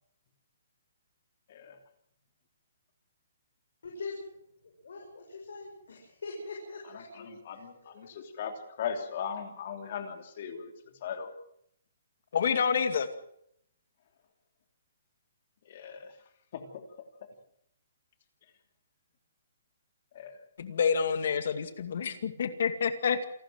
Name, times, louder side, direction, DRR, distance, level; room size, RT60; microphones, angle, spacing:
voice 1, 3.8-4.2 4.6-7.6, left 3 dB, 75° left, 0 dB, 6.8 m, -42 dB
voice 2, 6.8-11.3 15.6-16.1 16.5-16.8 20.1-20.4, left 7 dB, 40° left, 6 dB, 3.0 m, -39 dB
voice 3, 12.3-13.1 20.6-23.3, left 6 dB, 55° left, 10 dB, 2.3 m, -28 dB
28.0 x 12.5 x 7.7 m, 0.71 s
hypercardioid pair, 175°, 0 cm